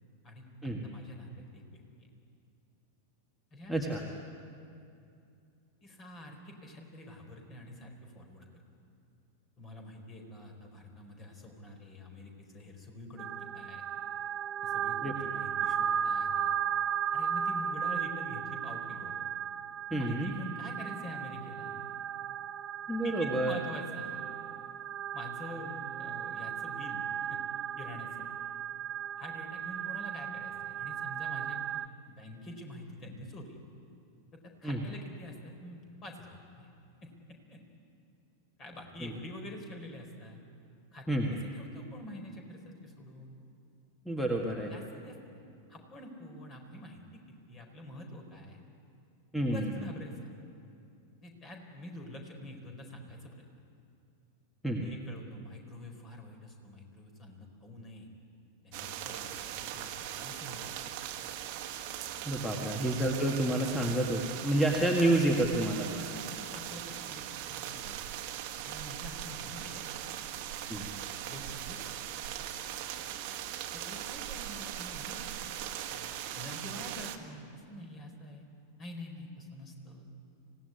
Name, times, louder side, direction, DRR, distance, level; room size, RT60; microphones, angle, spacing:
voice 1, 0.2-2.1 3.5-3.7 5.8-8.5 9.6-13.8 14.6-16.5 17.1-19.2 19.9-21.9 23.0-24.2 25.1-27.4 27.8-28.3 29.2-31.7 32.1-33.6 34.3-36.7 37.0-37.6 38.6-40.4 40.9-43.3 44.7-45.2 45.7-48.6 49.4-50.3 51.2-53.4 54.8-58.1 58.6-60.8 62.4-63.1 65.9-68.0 68.6-69.9 71.0-71.8 72.8-72.9 73.7-75.2 75.9-78.4 78.8-80.1, left 1 dB, 25° left, 3 dB, 4.5 m, -47 dB
voice 2, 3.7-4.0 15.0-15.1 19.9-20.3 22.9-23.6 34.6-34.8 39.0-39.1 41.1-41.3 44.1-44.7 49.3-49.7 54.6-54.8 62.3-65.9 70.7-70.9, right 1 dB, 5° left, 0 dB, 1.9 m, -29 dB
sound 1, 13.2-31.9, right 8 dB, 30° right, 0.6 m, -35 dB
sound 2, 58.7-77.2, right 11 dB, 45° right, 1.5 m, -40 dB
25.5 x 17.5 x 9.7 m, 2.5 s
figure-of-eight pair, 90°, 0 cm